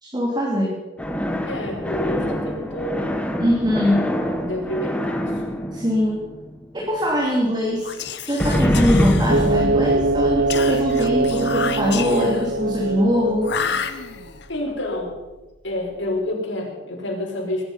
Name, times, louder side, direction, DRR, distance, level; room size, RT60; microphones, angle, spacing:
voice 1, 0.0-0.7 3.4-4.0 5.7-6.2 6.7-13.5, equal, 25° right, -3 dB, 3.0 m, -22 dB
sound 1, 1.0-6.9 8.4-13.7, equal, 5° left, 1.2 m, -25 dB
voice 2, 1.5-3.1 4.4-5.4 14.5-15.1 15.6-17.6, left 1 dB, 80° left, -2 dB, 5.7 m, -28 dB
Whispering, 7.8-9.7 10.5-12.5 13.4-14.5, left 7 dB, 65° left, 1.0 m, -31 dB
sound 2, 9.3-14.0, right 3 dB, 60° right, 0.7 m, -22 dB
22.0 x 11.0 x 5.7 m, 1.1 s
head